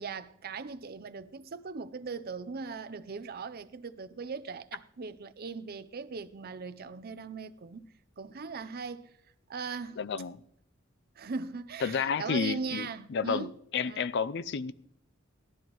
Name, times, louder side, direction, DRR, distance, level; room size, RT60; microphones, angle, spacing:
voice 1, 0.0-7.9 8.2-9.1 9.5-10.0 11.2-13.6 13.8-14.1, right 4 dB, 50° right, 0.6 m, -39 dB
voice 2, 10.0-10.4 11.8-14.7, left 6 dB, 55° left, 0.5 m, -31 dB
17.5 x 12.5 x 3.1 m
head